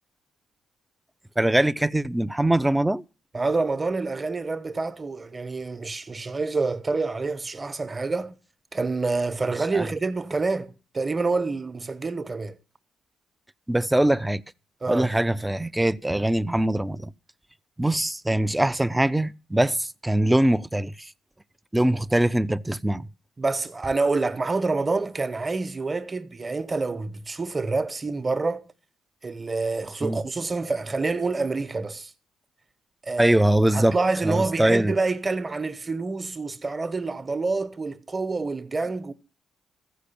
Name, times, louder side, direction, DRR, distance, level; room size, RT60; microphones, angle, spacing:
voice 1, 1.4-3.0 9.7-9.9 13.7-14.4 14.9-17.1 17.8-21.1 21.7-23.1 30.0-30.2 33.2-34.0 34.2-34.9, right 1 dB, 10° right, 0.5 m, -22 dB
voice 2, 3.3-8.3 8.7-12.6 14.8-15.1 23.4-28.7 29.2-32.1 33.1-33.4 33.7-39.1, right 3 dB, 25° right, 1.1 m, -27 dB
15.0 x 5.1 x 8.4 m
cardioid pair, 90°, 0 cm